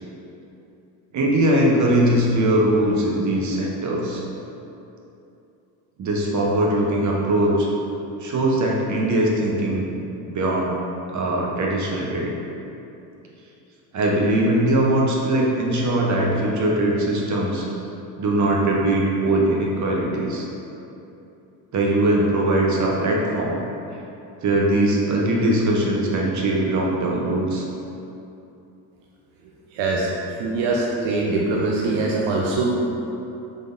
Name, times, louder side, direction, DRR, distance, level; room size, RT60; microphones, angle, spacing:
voice 1, 1.1-4.2 6.0-7.7 8.2-9.9 10.3-10.7 11.1-12.3 13.9-17.6 18.2-20.4 21.7-23.6 24.4-27.7, right 1 dB, 40° right, -2 dB, 0.8 m, -21 dB
voice 2, 29.7-30.1 30.4-32.8, right 3 dB, 70° right, -3 dB, 0.6 m, -22 dB
4.0 x 3.2 x 2.5 m, 2.8 s
supercardioid pair, 80°, 46 cm